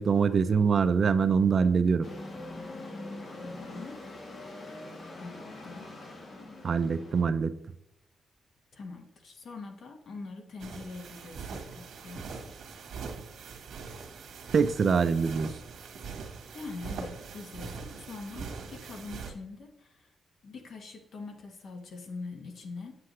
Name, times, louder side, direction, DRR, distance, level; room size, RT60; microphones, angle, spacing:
voice 1, 0.0-2.1 6.6-7.5 14.5-15.5, right 5 dB, 45° right, 12 dB, 0.4 m, -24 dB
sound 1, 2.0-7.2, left 2 dB, 40° left, 1.4 m, -43 dB
voice 2, 3.4-4.0 5.2-5.9 8.7-12.5 16.5-20.1 20.4-22.9, left 3 dB, 60° left, 3 dB, 1.5 m, -43 dB
sound 2, 10.6-19.3, right 5 dB, 75° right, 1.5 m, -42 dB
8.4 x 7.7 x 3.2 m, 0.82 s
wide cardioid pair, 160°, 0 cm